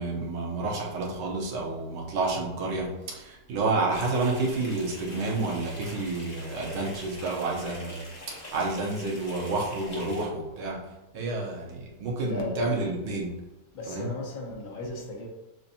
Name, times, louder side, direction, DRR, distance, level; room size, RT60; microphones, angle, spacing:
voice 1, 0.0-8.1 8.5-13.4 13.9-14.1, right 3 dB, 80° right, -2 dB, 1.7 m, -30 dB
sound 1, 3.9-10.2, left 1 dB, 45° left, 0.5 m, -44 dB
voice 2, 12.2-12.6 13.7-15.3, left 2 dB, 75° left, -1 dB, 1.7 m, -36 dB
6.9 x 2.6 x 2.8 m, 0.99 s
omnidirectional pair, 2.3 m